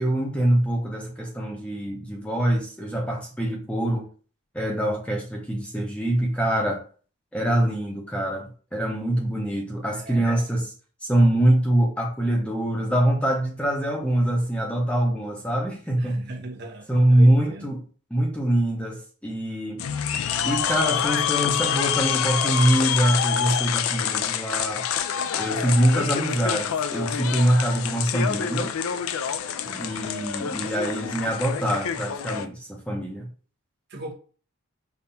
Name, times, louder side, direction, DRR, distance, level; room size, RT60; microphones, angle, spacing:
voice 1, 0.0-4.1 4.5-6.8 7.3-10.7 11.0-16.3 16.9-17.8 18.1-19.8 20.4-24.8 25.4-28.7 29.8-33.3, right 1 dB, 5° left, 0.6 m, -24 dB
voice 2, 9.9-10.2 16.0-17.7 29.6-29.9 33.9-34.1, right 2 dB, 50° right, 0.8 m, -39 dB
sound 1, 19.8-32.5, left 8 dB, 80° left, 0.4 m, -27 dB
5.3 x 2.3 x 2.7 m
head